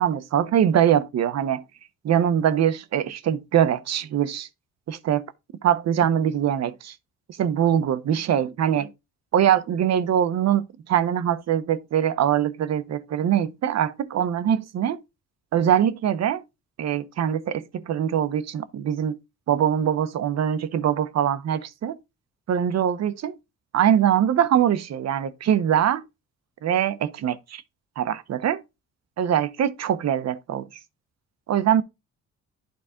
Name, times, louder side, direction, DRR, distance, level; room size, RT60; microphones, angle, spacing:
voice 1, 0.0-1.6 2.0-4.5 4.9-5.2 5.6-6.9 7.4-8.9 9.3-15.0 15.5-16.4 16.8-19.2 19.5-22.0 22.5-23.4 23.7-26.0 26.6-27.6 28.0-28.6 29.2-30.7 31.5-31.8, right 9 dB, 60° right, 0.8 m, -23 dB
11.5 x 4.0 x 3.7 m
cardioid pair, 90°, 30 cm